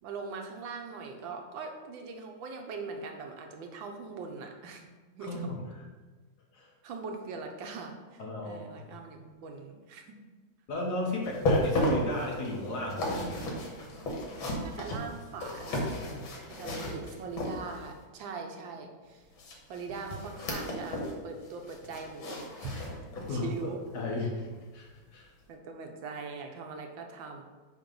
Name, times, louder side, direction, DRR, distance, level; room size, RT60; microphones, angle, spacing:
voice 1, 0.0-5.5 6.8-10.2 14.6-15.9 16.5-19.2 19.7-22.9 23.3-23.8 25.5-27.4, right 4 dB, 75° right, 3 dB, 1.6 m, -41 dB
voice 2, 5.2-5.8 6.5-6.7 8.2-8.9 10.7-13.3 23.3-24.5 24.7-25.3, left 2 dB, 55° left, -2 dB, 1.7 m, -35 dB
sound 1, 11.2-18.0 19.4-21.2 21.5-23.4 23.9-24.0 24.6-24.7, left 1 dB, 80° left, 2.2 m, -33 dB
8.8 x 3.1 x 5.3 m, 1.4 s
omnidirectional pair, 2.1 m